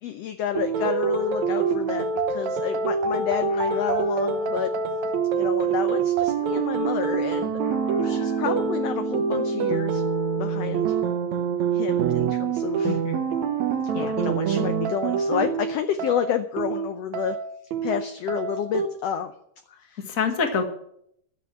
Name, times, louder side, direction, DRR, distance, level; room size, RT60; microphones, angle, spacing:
voice 1, 0.0-4.7 5.3-7.5 8.0-10.0 10.4-11.0 11.7-13.0 14.0-17.4 17.8-19.3 19.7-20.0, left 9 dB, 75° left, 9 dB, 1.5 m, -30 dB
sound 1, 0.5-18.9, right 6 dB, 70° right, 2.2 m, -25 dB
sound 2, 3.5-4.8 7.6-8.8, left 7 dB, 55° left, 1.9 m, -44 dB
voice 2, 12.8-13.2 13.9-14.1 20.1-20.6, left 5 dB, 35° left, 5 dB, 1.6 m, -26 dB
12.5 x 6.9 x 9.7 m, 0.71 s
omnidirectional pair, 3.6 m